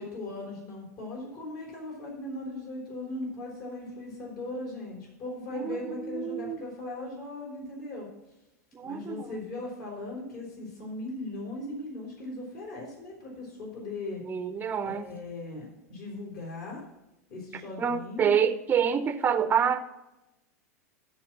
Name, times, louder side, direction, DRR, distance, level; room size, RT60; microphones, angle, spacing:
voice 1, 0.0-8.1 8.8-14.2 14.8-16.8 17.3-18.3, left 2 dB, 45° left, -2 dB, 4.6 m, -38 dB
voice 2, 5.5-6.6 8.7-9.3 14.3-15.1 17.8-19.8, right 7 dB, 20° right, 11 dB, 0.8 m, -27 dB
14.0 x 4.8 x 6.2 m, 0.94 s
figure-of-eight pair, 90°, 9 cm